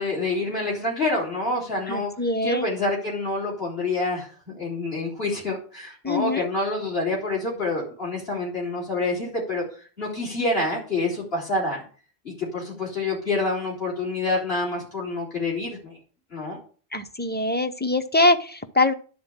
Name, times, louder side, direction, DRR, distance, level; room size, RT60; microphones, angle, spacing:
voice 1, 0.0-2.1 2.4-4.3 4.6-9.6 10.0-11.8 12.2-15.9 16.3-16.6, left 2 dB, 70° left, -5 dB, 4.0 m, -27 dB
voice 2, 1.9-2.7 6.0-6.5 16.9-18.9, left 2 dB, 10° left, 8 dB, 0.6 m, -23 dB
11.0 x 4.2 x 7.3 m, 0.41 s
omnidirectional pair, 1.1 m